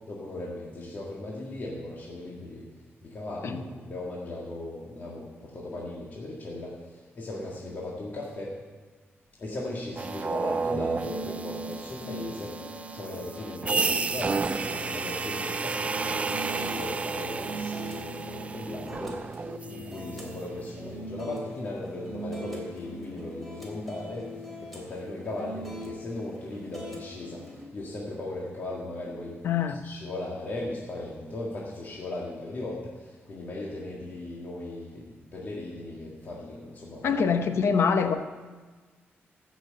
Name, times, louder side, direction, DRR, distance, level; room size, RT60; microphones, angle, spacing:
voice 1, 0.1-2.7 3.0-8.5 9.4-29.4 29.8-37.2, left 2 dB, 45° left, -4 dB, 1.9 m, -37 dB
sound 1, 9.5-27.7, right 1 dB, ahead, 2.8 m, -42 dB
sound 2, 10.0-20.1, right 4 dB, 30° right, 0.4 m, -32 dB
sound 3, 13.9-22.3, right 4 dB, 85° right, 1.0 m, -48 dB
voice 2, 29.4-29.8 37.0-38.2, left 6 dB, 70° left, 8 dB, 0.8 m, -24 dB
14.0 x 6.2 x 7.7 m, 1.4 s
wide cardioid pair, 145°, 4 cm